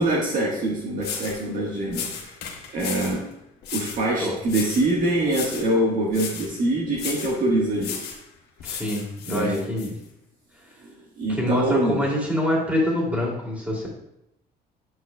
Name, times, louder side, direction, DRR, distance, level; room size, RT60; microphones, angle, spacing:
voice 1, 0.0-2.3 2.7-3.2 3.7-8.1 9.3-9.6 11.2-12.0, right 1 dB, 55° right, -3 dB, 1.4 m, -24 dB
sound 1, 0.6-0.7 1.0-1.4 1.9-3.2 3.6-4.0 4.5-4.9 5.3-5.7 6.1-6.5 6.9-7.4 7.8-8.2 8.6-9.9, left 7 dB, 75° left, 1.1 m, -34 dB
voice 2, 8.6-9.9 11.3-13.9, left 1 dB, 10° right, -4 dB, 2.6 m, -25 dB
8.0 x 6.3 x 2.3 m, 0.83 s
cardioid pair, 110°, 17 cm